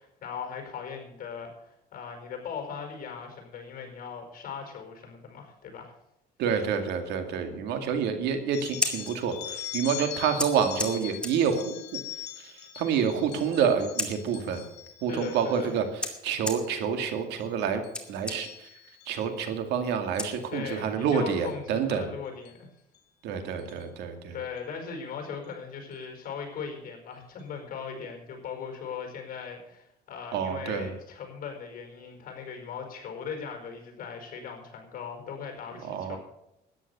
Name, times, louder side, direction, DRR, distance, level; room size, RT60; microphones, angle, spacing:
voice 1, 0.0-6.0 15.1-15.8 20.5-22.7 24.3-36.2, left 6 dB, 55° left, 4 dB, 5.1 m, -39 dB
voice 2, 6.4-11.6 12.8-14.6 15.0-15.8 16.2-17.8 18.1-18.5 19.1-22.1 23.2-24.3 30.3-30.9 35.9-36.2, right 7 dB, 85° right, 7 dB, 2.3 m, -28 dB
sound 1, 8.5-15.8 16.3-16.7 17.0-17.4 17.8-19.2 20.1-20.4 21.3-21.5 22.5-22.6 22.9-23.0 23.6-23.8, left 12 dB, 80° left, 2.1 m, -42 dB
Scissors, 8.6-20.9, left 1 dB, 5° left, 2.4 m, -39 dB
13.0 x 10.0 x 6.9 m, 0.84 s
cardioid pair, 110°, 17 cm